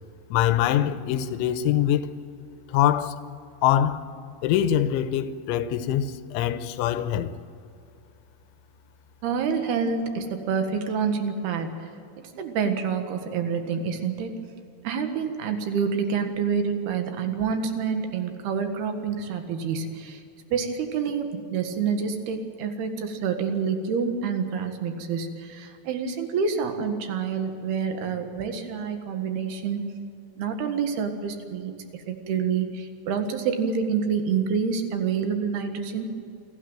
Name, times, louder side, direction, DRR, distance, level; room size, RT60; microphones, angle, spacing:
voice 1, 0.3-2.1 2.7-3.2 3.6-4.1 4.4-7.3, left 11 dB, 90° left, 3.2 m, -23 dB
voice 2, 9.2-11.8 12.4-14.3 14.8-20.2 20.5-29.8 30.4-36.1, right 6 dB, 65° right, 3.4 m, -27 dB
28.0 x 12.5 x 9.0 m
omnidirectional pair, 5.4 m